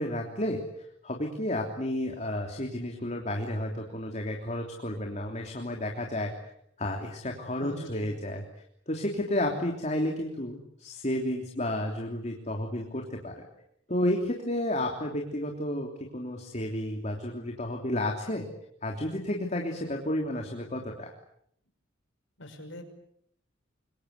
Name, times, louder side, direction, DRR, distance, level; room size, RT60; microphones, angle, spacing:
voice 1, 0.0-6.3 6.8-8.4 8.9-13.4 13.9-18.5 18.8-21.1, left 1 dB, 35° left, 2 dB, 3.3 m, -32 dB
voice 2, 7.6-8.1 22.4-22.8, left 1 dB, 70° left, 6 dB, 5.9 m, -42 dB
27.0 x 24.5 x 8.4 m, 0.71 s
head